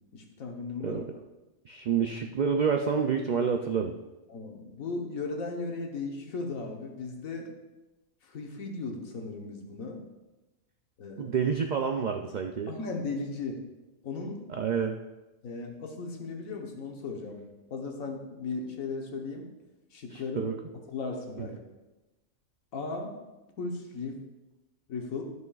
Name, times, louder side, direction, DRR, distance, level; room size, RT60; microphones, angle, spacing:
voice 1, 0.1-1.1 4.3-7.5 8.2-10.0 11.0-11.3 12.7-13.6 14.0-14.4 15.4-17.4 17.7-19.5 19.9-20.5 20.9-21.6 22.7-23.1 23.6-24.2 24.9-25.2, left 3 dB, 90° left, 1 dB, 1.5 m, -36 dB
voice 2, 1.7-3.9 11.2-12.7 14.6-15.0 20.1-20.5, right 6 dB, 80° right, 4 dB, 0.4 m, -28 dB
13.0 x 6.3 x 2.4 m, 1.1 s
omnidirectional pair, 1.4 m